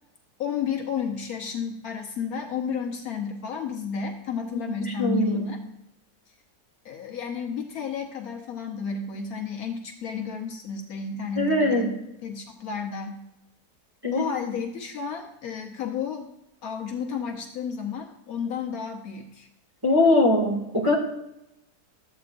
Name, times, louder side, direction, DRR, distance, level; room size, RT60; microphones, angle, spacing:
voice 1, 0.4-5.6 6.8-11.9 12.2-13.2 14.1-16.3 16.6-19.5, left 6 dB, 70° left, 3 dB, 1.3 m, -32 dB
voice 2, 4.5-5.5 11.4-11.9 14.0-14.3 19.8-20.9, left 1 dB, 15° right, -3 dB, 2.0 m, -22 dB
13.0 x 8.4 x 2.5 m, 0.86 s
omnidirectional pair, 1.7 m